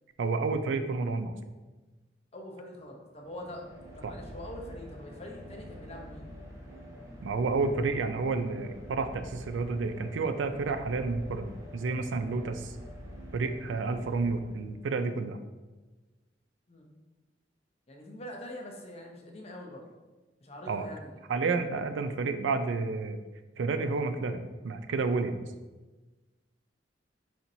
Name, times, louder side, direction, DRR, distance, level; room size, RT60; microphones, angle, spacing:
voice 1, 0.2-1.3 4.0-4.1 7.2-12.7 13.3-15.4 20.7-20.9 21.3-23.2 23.6-25.4, right 4 dB, 90° right, 9 dB, 0.4 m, -30 dB
voice 2, 2.3-3.6 3.9-6.3 16.7-16.9 17.9-19.9 20.4-21.2, left 1 dB, 35° left, 0 dB, 0.7 m, -44 dB
sound 1, 3.1-15.0, equal, 15° right, 0.8 m, -46 dB
4.3 x 4.1 x 2.6 m, 1.2 s
head